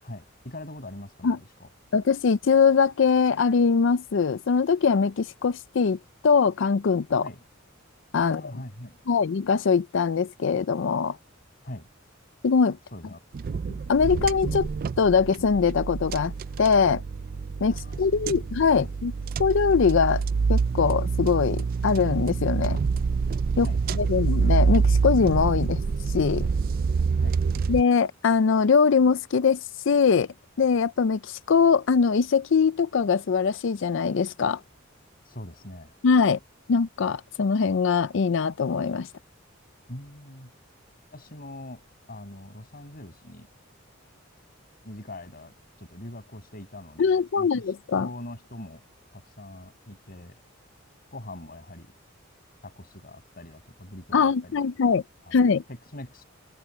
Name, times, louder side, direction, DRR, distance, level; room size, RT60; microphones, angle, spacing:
voice 1, 0.0-1.3 1.6-1.7 7.2-7.4 8.2-9.0 11.6-11.9 12.9-13.2 17.7-18.3 18.7-18.9 23.5-24.0 27.2-27.4 35.2-35.9 39.9-40.5 41.1-43.5 44.8-48.8 49.1-50.4 51.1-51.9 52.6-56.2, left 1 dB, 50° left, 6.4 m, -42 dB
voice 2, 1.9-6.0 6.2-7.2 8.1-8.4 9.1-11.2 12.4-12.8 13.9-14.7 15.0-16.3 16.6-17.0 17.6-19.1 19.4-20.2 20.5-22.8 23.6-23.7 23.9-25.8 26.1-26.5 27.7-29.6 29.9-30.3 30.6-34.6 36.0-36.4 36.7-39.1 47.0-48.1 54.1-55.0 55.3-55.6, left 5 dB, 65° left, 0.5 m, -22 dB
sound 1, 13.3-27.8, right 5 dB, 45° right, 0.4 m, -26 dB
head